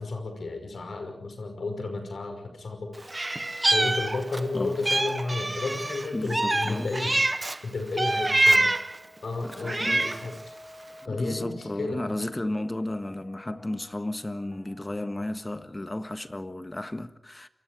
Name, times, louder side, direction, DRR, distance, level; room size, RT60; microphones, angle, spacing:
voice 1, 0.0-2.9 3.7-7.1 7.6-8.7 9.2-10.3 11.1-12.0, left 3 dB, 80° left, 5.6 m, -32 dB
sound 1, 2.3-15.6, left 2 dB, 50° left, 7.8 m, -53 dB
Meow, 3.1-4.5 4.8-7.6 8.0-9.0 9.5-10.3, right 2 dB, 25° right, 0.9 m, -25 dB
voice 2, 4.5-4.9 6.1-7.0 9.4-10.1 11.0-17.5, left 1 dB, 25° left, 1.5 m, -33 dB
sound 2, 6.5-7.9, right 2 dB, 60° right, 5.7 m, -53 dB
28.0 x 24.5 x 5.0 m
wide cardioid pair, 70°, 0 cm